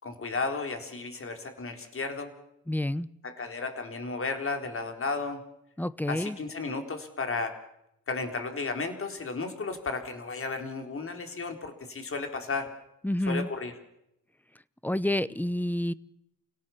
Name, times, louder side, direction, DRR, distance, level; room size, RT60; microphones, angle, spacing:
voice 1, 0.0-2.3 3.2-5.4 6.1-7.6 8.1-12.7 13.3-13.7, left 4 dB, 40° left, 5 dB, 3.9 m, -33 dB
voice 2, 2.7-3.1 5.8-6.4 13.0-13.5 14.8-15.9, left 1 dB, 5° left, 18 dB, 0.8 m, -28 dB
29.5 x 17.5 x 7.2 m, 0.82 s
cardioid pair, 90°, 32 cm